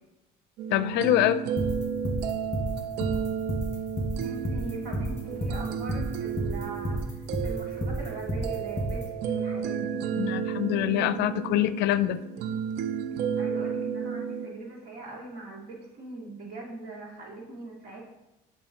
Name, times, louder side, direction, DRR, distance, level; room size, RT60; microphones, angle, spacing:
sound 1, 0.6-14.5, right 7 dB, 90° right, 0.5 m, -32 dB
voice 1, 0.7-1.4 10.1-12.2, left 12 dB, 80° left, 13 dB, 0.4 m, -25 dB
sound 2, 1.6-9.0, equal, 15° left, 1.7 m, -30 dB
voice 2, 4.2-10.0 13.4-18.1, right 3 dB, 65° right, -3 dB, 2.6 m, -41 dB
8.7 x 6.0 x 2.9 m, 1.0 s
cardioid pair, 110°, 17 cm